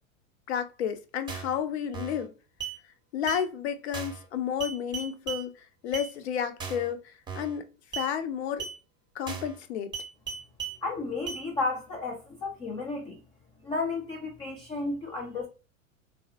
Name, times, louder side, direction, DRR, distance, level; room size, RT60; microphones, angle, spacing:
voice 1, 0.5-2.3 3.1-5.5 5.8-7.7 8.0-8.7 9.2-9.9, left 8 dB, 55° left, 0.6 m, -31 dB
sound 1, 1.3-1.6 1.9-2.2 2.6-2.8 3.3-3.4 3.9-4.2 4.6-5.4 5.9-6.1 6.6-6.9 7.3-7.6 7.9-8.1 8.6-8.8 9.3-9.6 9.9-10.8 11.3-11.4, right 6 dB, 10° right, 0.8 m, -36 dB
voice 2, 10.8-13.2 13.6-15.5, left 3 dB, 15° left, 0.4 m, -33 dB
3.8 x 2.0 x 2.7 m
figure-of-eight pair, 90°, 41 cm